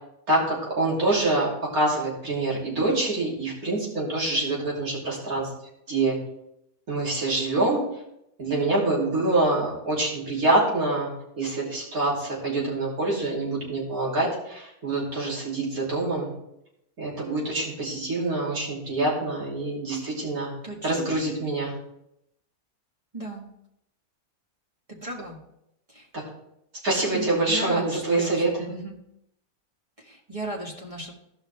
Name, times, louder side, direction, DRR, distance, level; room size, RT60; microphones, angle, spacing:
voice 1, 0.3-5.5 5.9-6.2 6.9-7.8 8.4-11.1 11.4-16.3 17.0-20.5 20.8-21.7 26.1-26.2 26.8-28.7, right 2 dB, 75° right, -5 dB, 3.4 m, -25 dB
voice 2, 20.6-21.1 23.1-23.5 24.9-25.4 25.9-26.1 27.1-28.9 30.0-31.1, right 1 dB, 25° right, -2 dB, 1.6 m, -36 dB
16.5 x 5.5 x 3.3 m, 0.80 s
omnidirectional pair, 1.6 m